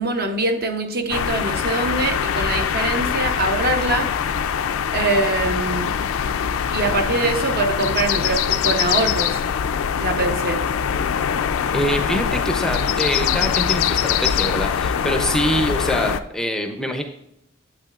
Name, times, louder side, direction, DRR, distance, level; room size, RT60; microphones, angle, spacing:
voice 1, 0.0-4.2 4.9-6.0 6.7-9.4 10.0-10.6, right 2 dB, 50° right, 6 dB, 0.8 m, -23 dB
sound 1, 1.1-16.2, left 8 dB, 90° left, 0.4 m, -23 dB
voice 2, 11.7-17.0, equal, 5° left, 5 dB, 0.5 m, -24 dB
8.7 x 8.1 x 2.4 m, 0.82 s
head